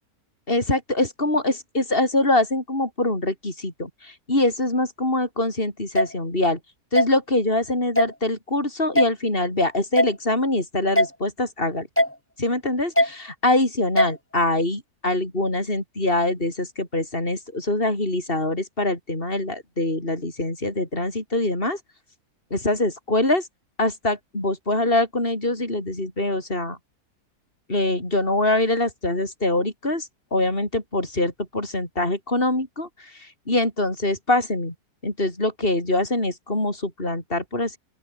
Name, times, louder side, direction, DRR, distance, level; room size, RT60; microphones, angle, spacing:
voice 1, 0.5-6.6 6.9-11.9 12.4-21.8 22.5-23.5 23.8-26.8 27.7-34.7 35.0-37.8, left 2 dB, 35° left, 7.0 m, -24 dB
sound 1, 6.0-6.1 7.0-7.1 8.0-8.1 9.0-9.1 10.0-10.1 11.0-11.1 12.0-12.1 13.0-13.1 14.0-14.1, left 1 dB, 10° left, 3.0 m, -18 dB
open air
omnidirectional pair, 1.6 m